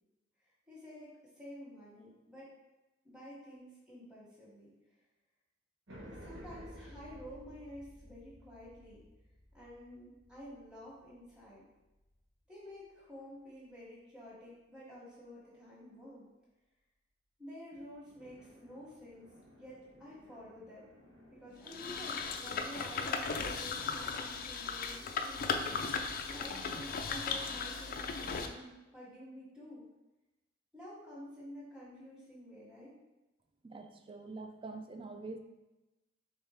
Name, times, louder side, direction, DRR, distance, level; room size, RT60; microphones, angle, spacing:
voice 1, 0.7-2.5 3.0-4.7 6.0-9.0 9.5-11.6 12.5-16.3 17.4-19.3 19.6-20.9 21.3-25.6 26.3-29.8 30.7-32.9, equal, 5° right, -8 dB, 1.1 m, -50 dB
sound 1, 5.9-12.4 17.7-22.6, equal, 90° right, 1.2 m, -56 dB
sound 2, 21.7-28.5, left 5 dB, 50° left, 0.4 m, -37 dB
voice 2, 33.6-35.4, right 3 dB, 30° right, 5 dB, 0.4 m, -45 dB
3.5 x 3.3 x 4.2 m, 1.0 s
head